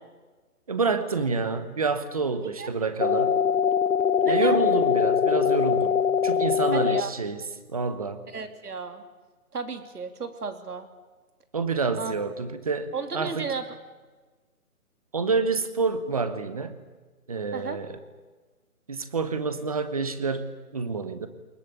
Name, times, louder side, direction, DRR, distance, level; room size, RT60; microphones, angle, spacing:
voice 1, 0.7-3.4 4.3-6.0 6.2-7.4 7.7-8.2 11.5-13.5 15.1-16.8 17.3-18.0 18.9-21.3, right 4 dB, 25° right, 12 dB, 1.0 m, -28 dB
sound 1, 3.0-7.0, left 8 dB, 60° left, 0.8 m, -22 dB
voice 2, 4.2-4.6 6.7-7.1 8.3-9.0 9.5-10.9 12.0-12.1 12.9-13.6 17.5-17.8, right 5 dB, 90° right, 8 dB, 3.1 m, -33 dB
23.0 x 21.0 x 8.5 m, 1.3 s
hypercardioid pair, 175°, 45 cm